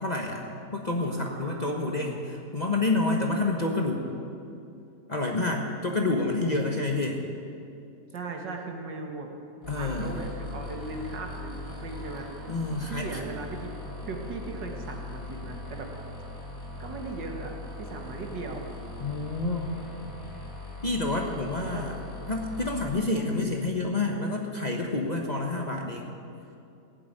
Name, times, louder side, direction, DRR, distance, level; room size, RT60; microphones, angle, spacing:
voice 1, 0.0-4.0 5.1-7.2 9.7-10.1 12.5-13.2 19.0-19.7 20.8-21.9 22.3-26.1, left 2 dB, 30° left, 0 dB, 1.0 m, -28 dB
voice 2, 1.1-2.0 8.1-9.4 9.7-12.3 12.8-13.8 14.1-15.9 16.8-17.5 17.8-18.7 21.7-21.9 23.2-23.5, right 3 dB, 80° right, 2 dB, 2.2 m, -38 dB
sound 1, 9.6-22.9, left 2 dB, 50° left, 2.8 m, -40 dB
16.0 x 7.8 x 9.0 m, 2.6 s
omnidirectional pair, 1.9 m